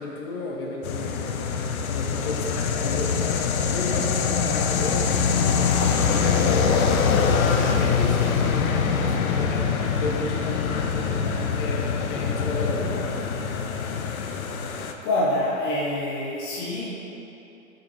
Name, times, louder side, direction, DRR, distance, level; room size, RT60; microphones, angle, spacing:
voice 1, 0.0-13.3, left 2 dB, 40° left, -1 dB, 1.0 m, -33 dB
sound 1, 0.8-14.9, left 6 dB, 80° left, 0.7 m, -24 dB
voice 2, 15.0-16.9, left 1 dB, 25° left, -6 dB, 0.7 m, -26 dB
8.9 x 4.9 x 3.1 m, 2.9 s
hypercardioid pair, 145°, 42 cm